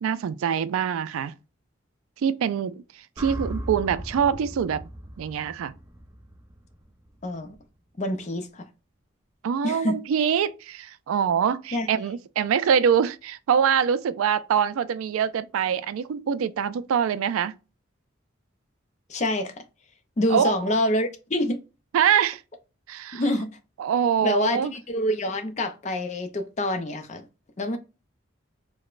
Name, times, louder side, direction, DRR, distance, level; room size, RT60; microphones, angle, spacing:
voice 1, 0.0-1.4 2.2-4.9 5.2-5.7 9.4-17.6 20.3-20.6 21.9-22.4 22.9-23.2 23.8-24.7, right 8 dB, 90° right, 0.3 m, -24 dB
sound 1, 3.2-7.4, equal, 15° right, 0.5 m, -38 dB
voice 2, 7.2-7.6 8.0-8.7 9.6-9.9 11.7-11.9 19.1-19.5 20.2-21.6 23.1-23.5 24.2-27.3 27.6-27.8, left 1 dB, 35° left, 0.4 m, -26 dB
4.7 x 2.1 x 2.4 m
head